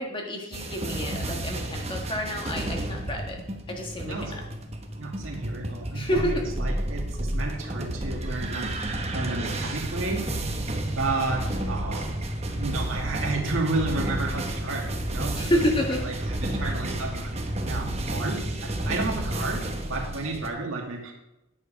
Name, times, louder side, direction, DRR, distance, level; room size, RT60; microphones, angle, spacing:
voice 1, 0.0-3.4 3.7-4.4 5.9-6.4 15.4-16.0, equal, 25° left, 1 dB, 1.5 m, -29 dB
sound 1, 0.5-20.5, right 1 dB, 30° right, 1.0 m, -31 dB
voice 2, 4.0-4.4 5.0-12.1 12.5-15.6 16.0-17.4 17.7-21.1, right 3 dB, 75° right, 0 dB, 2.1 m, -32 dB
9.8 x 7.3 x 5.2 m, 0.92 s
head